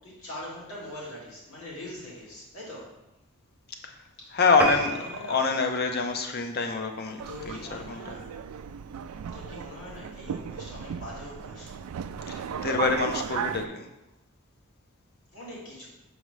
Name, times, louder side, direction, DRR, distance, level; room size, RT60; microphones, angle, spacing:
voice 1, 0.0-3.0 4.2-5.4 7.2-8.3 9.3-11.8 15.3-15.9, left 1 dB, 75° left, -6 dB, 2.3 m, -42 dB
voice 2, 4.3-5.0 5.3-8.2 12.3-13.9, left 4 dB, 45° left, 4 dB, 0.6 m, -26 dB
sound 1, 4.6-7.3 7.8-8.0 8.5-8.6 8.9-9.0 9.2-9.3, right 2 dB, 5° right, 0.4 m, -33 dB
Subway metro underground, 7.2-13.7, right 7 dB, 90° right, 0.3 m, -36 dB
6.4 x 4.8 x 3.2 m, 0.94 s
head